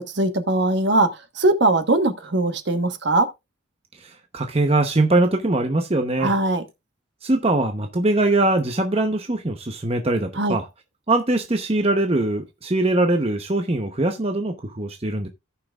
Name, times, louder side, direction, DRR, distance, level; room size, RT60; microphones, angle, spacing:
voice 1, 0.0-3.3 6.2-6.6 10.4-10.6, right 2 dB, 55° right, 1.2 m, -21 dB
voice 2, 4.0-6.3 7.2-10.6 11.1-15.3, right 2 dB, 30° right, 0.8 m, -22 dB
17.0 x 5.8 x 2.4 m
head